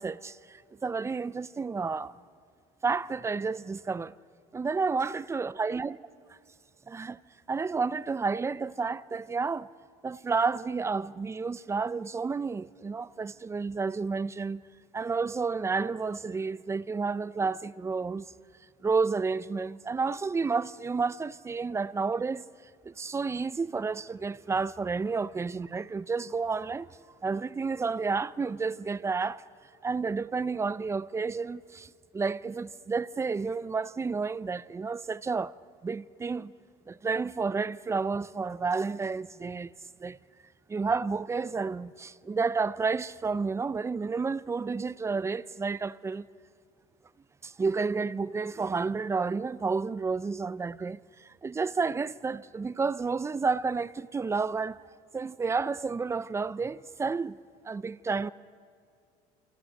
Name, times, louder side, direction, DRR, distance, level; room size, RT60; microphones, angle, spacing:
voice 1, 0.0-2.2 2.8-4.1 4.5-6.0 6.9-7.2 7.5-9.7 10.0-14.6 14.9-18.3 18.8-22.4 22.8-26.9 27.2-29.4 29.8-35.5 35.8-36.5 36.9-39.7 40.0-40.2 40.7-46.2 47.4-54.8 55.1-57.4 57.6-58.3, right 4 dB, 15° right, 0.5 m, -31 dB
27.5 x 25.0 x 6.5 m
cardioid pair, 120°, 17 cm